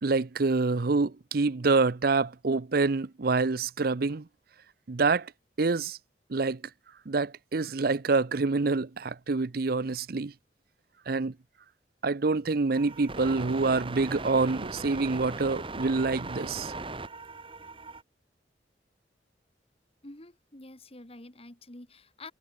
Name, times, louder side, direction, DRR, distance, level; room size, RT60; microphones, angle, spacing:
voice 1, 0.0-4.3 4.9-5.3 5.6-6.0 6.3-6.6 7.1-10.3 11.1-11.3 12.0-16.7, right 3 dB, 55° right, 0.6 m, -26 dB
sound 1, 12.7-18.0, right 3 dB, 30° right, 2.3 m, -39 dB
voice 2, 20.0-22.3, left 2 dB, 35° left, 2.1 m, -47 dB
head